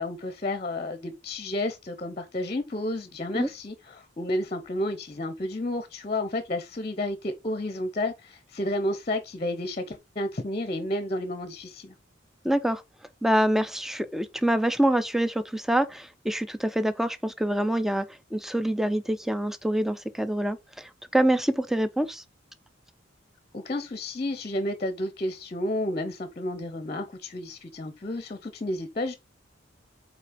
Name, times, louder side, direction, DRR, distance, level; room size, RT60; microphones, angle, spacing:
voice 1, 0.0-11.9 23.5-29.1, left 1 dB, 35° left, 0.7 m, -31 dB
voice 2, 12.4-12.8 13.2-18.1 18.3-22.2, right 1 dB, ahead, 0.4 m, -26 dB
5.6 x 4.2 x 5.0 m
head